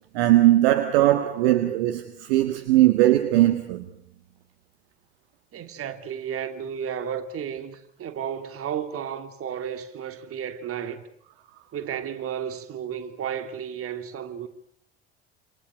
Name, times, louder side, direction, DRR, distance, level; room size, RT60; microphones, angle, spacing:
voice 1, 0.1-3.9, right 15 dB, 65° right, 1.7 m, -19 dB
voice 2, 5.5-11.0 11.7-14.5, right 8 dB, 45° right, 2.8 m, -33 dB
28.0 x 27.0 x 6.3 m
figure-of-eight pair, 55°, 31 cm